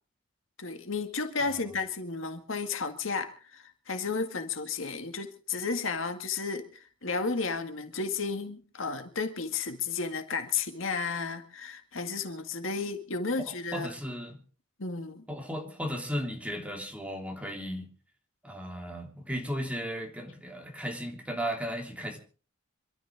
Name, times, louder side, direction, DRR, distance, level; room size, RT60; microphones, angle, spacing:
voice 1, 0.6-13.9 14.8-15.2, left 4 dB, 70° left, 2.0 m, -33 dB
voice 2, 13.5-14.4 15.3-17.9 18.4-22.2, equal, 5° right, 3.2 m, -35 dB
26.5 x 13.0 x 3.6 m
head